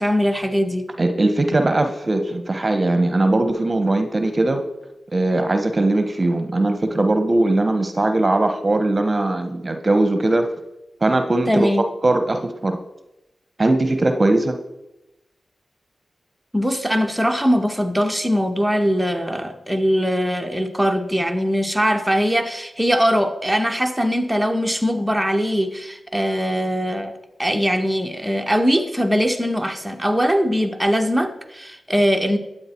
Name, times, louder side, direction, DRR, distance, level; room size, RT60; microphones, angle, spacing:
voice 1, 0.0-0.9 11.5-11.8 16.5-27.1 27.4-32.4, equal, 5° right, 4 dB, 1.4 m, -21 dB
voice 2, 1.0-4.6 5.1-10.5 11.0-12.8 13.6-14.6, right 2 dB, 35° right, 7 dB, 1.1 m, -20 dB
12.5 x 9.0 x 4.6 m, 0.93 s
cardioid pair, 50°, 0 cm